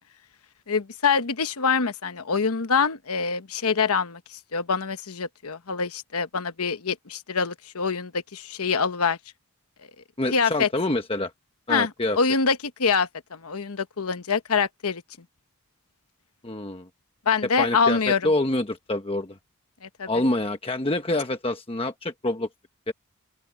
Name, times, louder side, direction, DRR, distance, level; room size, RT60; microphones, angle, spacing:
voice 1, 0.7-4.2 4.5-9.2 10.3-10.7 11.7-11.9 12.2-15.0 17.3-18.2 19.8-20.1, left 5 dB, 85° left, 1.0 m, -25 dB
voice 2, 10.2-11.3 11.7-12.2 16.4-16.9 17.6-19.4 20.1-22.5 22.9-23.0, left 2 dB, 25° left, 1.2 m, -26 dB
open air
head